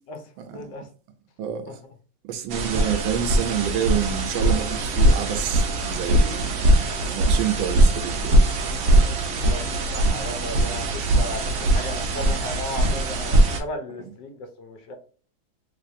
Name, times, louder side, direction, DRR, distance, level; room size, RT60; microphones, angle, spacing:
voice 1, 0.5-0.9 1.7-1.8 8.9-9.1 9.4-15.0, left 1 dB, 70° left, 1.3 m, -36 dB
voice 2, 1.4-1.8 2.3-6.6 7.1-8.9 10.8-10.9 14.0-14.1, right 9 dB, 85° right, 1.4 m, -28 dB
sound 1, 2.5-13.6, right 1 dB, 65° right, 0.7 m, -21 dB
3.3 x 3.3 x 2.5 m
omnidirectional pair, 2.1 m